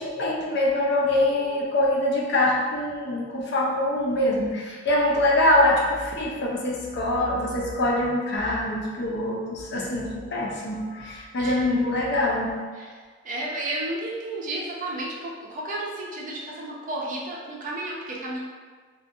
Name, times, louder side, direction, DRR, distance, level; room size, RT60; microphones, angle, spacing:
voice 1, 0.0-12.5, left 1 dB, 60° left, -2 dB, 0.5 m, -24 dB
voice 2, 13.2-18.4, right 1 dB, 40° right, -3 dB, 0.5 m, -32 dB
2.4 x 2.3 x 2.6 m, 1.5 s
head